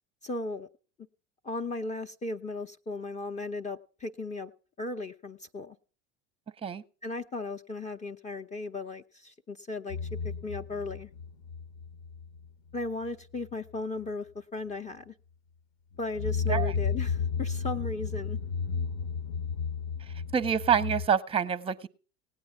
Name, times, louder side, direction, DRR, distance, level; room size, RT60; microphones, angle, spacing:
voice 1, 0.2-0.7 1.4-4.5 4.8-5.8 7.0-10.0 10.2-11.1 12.7-15.1 16.0-18.4, left 3 dB, 20° left, 0.6 m, -36 dB
sound 1, 9.9-12.5 12.7-13.1 13.4-13.5 16.0-21.1, left 6 dB, 60° left, 1.0 m, -33 dB
voice 2, 20.3-21.9, right 7 dB, 15° right, 0.7 m, -27 dB
17.5 x 9.0 x 5.8 m
hypercardioid pair, 85°, 37 cm